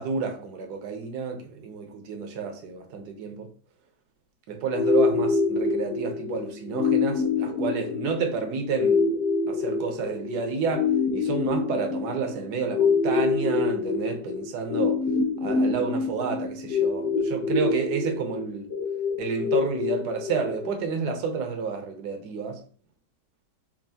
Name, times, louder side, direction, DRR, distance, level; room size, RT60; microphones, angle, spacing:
voice 1, 0.0-3.5 4.5-9.0 9.5-15.0 15.4-18.7 19.2-22.6, right 5 dB, 70° right, 1.4 m, -30 dB
sound 1, 4.7-20.7, left 4 dB, 85° left, 1.8 m, -26 dB
7.2 x 2.6 x 2.8 m
omnidirectional pair, 1.9 m